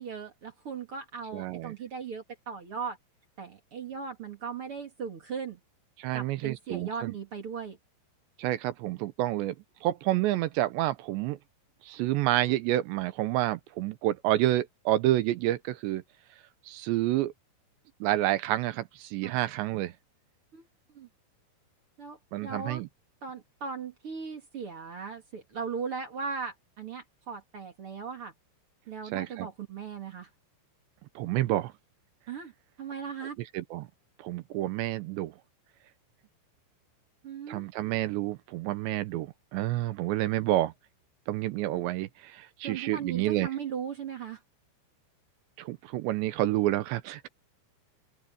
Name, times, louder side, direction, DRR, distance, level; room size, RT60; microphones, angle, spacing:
voice 1, 0.0-3.0 3.4-5.6 6.1-7.8 19.2-19.4 20.5-20.7 20.9-21.1 22.0-22.8 23.2-28.3 28.9-30.3 32.3-32.5 32.8-33.4 37.2-37.7 42.6-44.4, right 6 dB, 45° right, 2.0 m, -38 dB
voice 2, 1.3-1.7 6.0-7.1 8.4-9.6 9.8-11.4 11.8-16.0 16.7-17.3 18.0-19.9 22.3-22.9 29.1-29.5 31.2-31.7 33.5-33.9 34.2-35.3 37.5-40.7 41.3-43.5 45.6-47.3, right 15 dB, 80° right, 2.9 m, -29 dB
open air
omnidirectional pair, 5.3 m